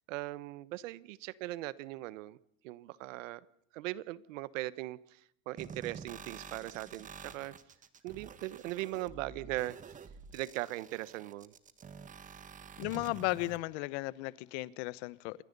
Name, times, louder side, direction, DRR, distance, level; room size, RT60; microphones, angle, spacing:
voice 1, 0.1-2.4 2.6-3.4 3.7-7.5 8.0-9.8 10.3-11.5, right 17 dB, 80° right, 18 dB, 1.3 m, -39 dB
sound 1, 5.6-13.6, right 6 dB, 20° right, 1.5 m, -49 dB
voice 2, 12.8-15.4, left 21 dB, 60° left, 19 dB, 1.1 m, -35 dB
28.0 x 21.0 x 5.4 m, 0.66 s
supercardioid pair, 150°, 38 cm